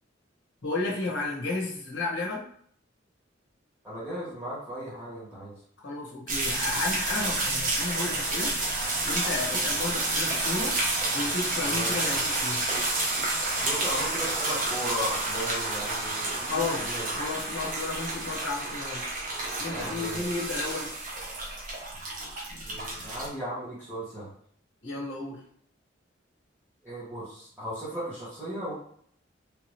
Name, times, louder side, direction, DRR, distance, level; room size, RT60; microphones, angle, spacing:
voice 1, 0.6-2.4 5.8-8.5 9.0-10.8 11.1-12.6 16.5-19.0 19.6-20.9 24.8-25.4, left 3 dB, 70° left, -3 dB, 1.0 m, -32 dB
voice 2, 3.8-5.5 11.6-12.0 13.6-17.0 19.6-20.2 22.7-24.3 26.8-28.7, equal, 10° right, -13 dB, 1.3 m, -36 dB
sound 1, 6.3-23.3, right 2 dB, 45° right, 0.9 m, -30 dB
3.4 x 2.8 x 3.1 m, 0.62 s
head